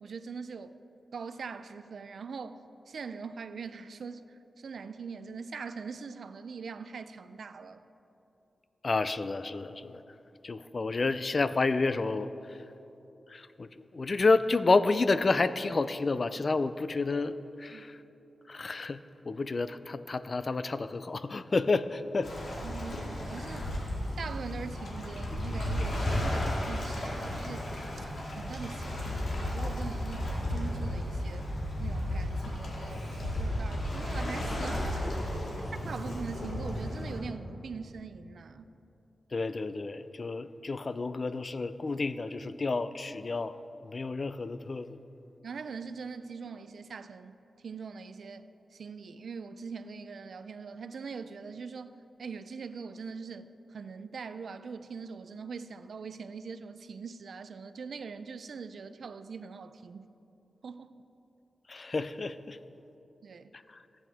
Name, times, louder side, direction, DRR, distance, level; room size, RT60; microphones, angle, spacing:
voice 1, 0.0-0.8 1.1-4.2 4.6-7.8 17.7-17.8 22.6-23.7 24.2-27.7 28.0-28.1 28.4-31.5 31.8-35.3 35.8-38.7 45.4-47.4 47.6-51.9 52.2-60.1 60.6-60.9 63.2-63.5, right 5 dB, 75° right, 0.4 m, -42 dB
voice 2, 8.8-10.0 10.4-12.6 13.3-18.0 18.5-19.0 19.3-22.3 39.3-43.6 43.8-45.0 61.7-62.6 63.7-63.8, left 3 dB, 45° left, 0.3 m, -30 dB
Waves surf, 22.2-37.2, left 1 dB, 75° left, 2.0 m, -34 dB
14.5 x 8.6 x 3.5 m
wide cardioid pair, 115°, 0 cm